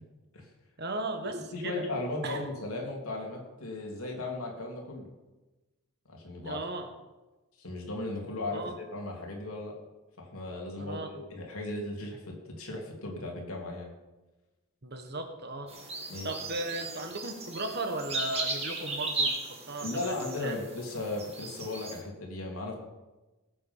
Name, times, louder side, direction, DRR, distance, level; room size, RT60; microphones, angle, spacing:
voice 1, 0.8-1.9 2.2-2.4 6.4-6.9 8.5-8.7 10.8-11.3 14.8-15.7 16.2-19.4 19.7-20.6, right 2 dB, 50° right, 6 dB, 1.5 m, -36 dB
voice 2, 1.5-5.1 6.0-6.6 7.6-9.8 10.2-13.9 16.1-16.4 19.8-22.7, left 2 dB, 75° left, 0 dB, 3.1 m, -36 dB
sound 1, 15.7-22.0, right 3 dB, 30° right, 2.3 m, -36 dB
18.0 x 7.7 x 5.6 m, 1.1 s
head